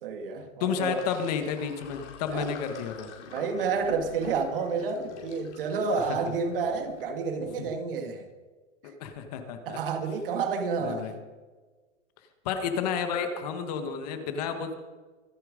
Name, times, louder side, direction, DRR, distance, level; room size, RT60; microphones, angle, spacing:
voice 1, 0.0-1.0 2.3-2.5 3.3-8.3 9.7-11.1, right 5 dB, 45° right, 1.9 m, -30 dB
voice 2, 0.6-3.1 6.0-6.1 7.4-7.7 8.8-9.8 10.8-11.1 12.5-14.7, left 7 dB, 30° left, 1.6 m, -31 dB
Sink (filling or washing), 0.7-7.0, left 5 dB, 60° left, 4.9 m, -45 dB
24.5 x 9.0 x 5.2 m
hypercardioid pair, 170°, 38 cm